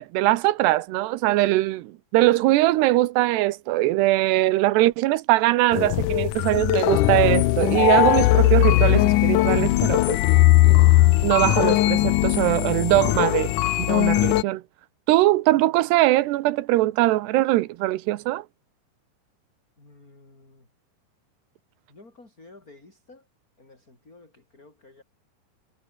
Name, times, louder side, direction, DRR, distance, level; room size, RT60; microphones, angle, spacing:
voice 1, 0.0-10.2 11.2-14.6 15.1-18.4, right 17 dB, 90° right, 3.1 m, -21 dB
sound 1, 5.7-14.4, left 16 dB, 85° left, 1.8 m, -19 dB
voice 2, 19.8-20.7 21.9-23.3 23.6-25.0, left 2 dB, 20° left, 6.1 m, -51 dB
omnidirectional pair, 4.7 m